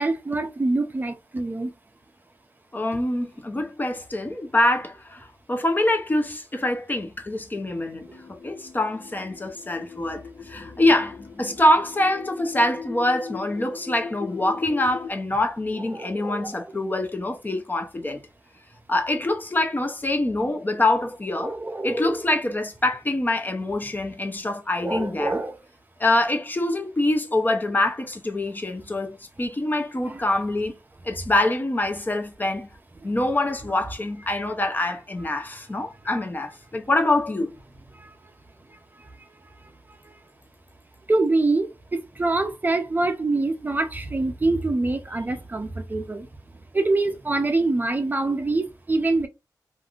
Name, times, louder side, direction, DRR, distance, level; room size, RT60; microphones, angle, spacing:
voice 1, 0.0-1.7 15.7-16.6 21.4-22.3 24.8-25.6 30.0-30.2 38.0-38.1 39.0-39.1 41.1-46.3 46.7-49.3, right 2 dB, 25° right, 0.5 m, -25 dB
voice 2, 2.7-18.2 18.9-21.5 21.8-25.4 26.0-30.8 31.0-32.7 33.0-37.5, left 1 dB, 25° left, 0.6 m, -25 dB
sound 1, 8.0-15.1, left 6 dB, 85° left, 1.1 m, -39 dB
3.3 x 2.5 x 2.4 m
wide cardioid pair, 95°, 7 cm